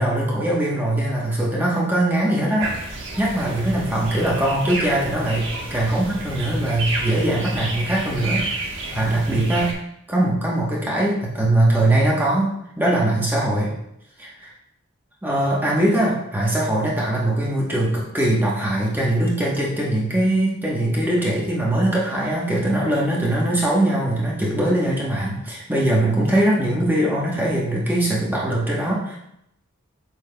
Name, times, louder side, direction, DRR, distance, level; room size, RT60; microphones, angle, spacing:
voice 1, 0.0-9.7 10.1-13.7 14.2-14.5 15.2-29.2, right 1 dB, 10° right, -5 dB, 1.0 m, -21 dB
sound 1, 2.6-9.7, right 2 dB, 60° right, 1.3 m, -31 dB
7.9 x 5.5 x 2.2 m, 0.79 s
head